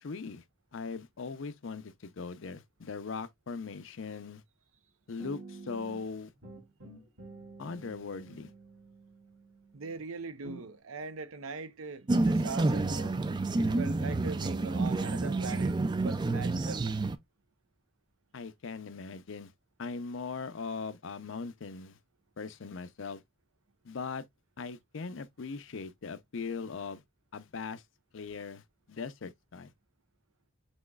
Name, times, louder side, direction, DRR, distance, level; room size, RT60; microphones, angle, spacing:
voice 1, 0.0-0.4 0.7-4.4 5.1-6.3 7.6-8.5 18.3-19.5 19.8-22.0 22.4-23.2 23.8-24.2 24.6-27.0 27.3-27.8 28.1-28.6 28.9-29.7, left 4 dB, 70° left, 0.5 m, -40 dB
sound 1, 5.2-6.1 6.4-10.0 10.4-10.7, right 3 dB, 70° right, 2.8 m, -49 dB
voice 2, 9.7-13.2 13.6-15.7 16.0-16.8, right 4 dB, 85° right, 0.6 m, -41 dB
sound 2, 12.1-17.2, right 2 dB, 20° right, 0.3 m, -29 dB
6.2 x 3.0 x 2.3 m
head